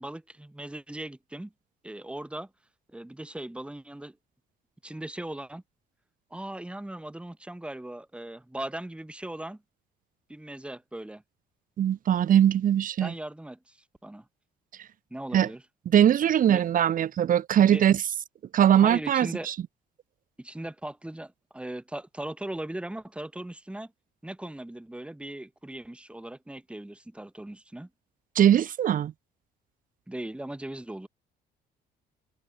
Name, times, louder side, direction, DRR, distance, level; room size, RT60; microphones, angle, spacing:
voice 1, 0.0-1.5 1.8-2.5 2.9-4.2 4.8-5.6 6.3-9.6 10.3-11.2 13.0-13.8 14.0-14.2 15.1-15.6 16.5-16.6 17.6-17.9 18.7-19.5 20.4-23.9 24.2-27.9 30.1-31.1, right 1 dB, 5° right, 6.1 m, -38 dB
voice 2, 11.8-13.1 15.3-15.5 15.9-18.0 18.5-19.5 28.3-29.1, right 10 dB, 55° right, 2.6 m, -21 dB
cardioid pair, 110°, 17 cm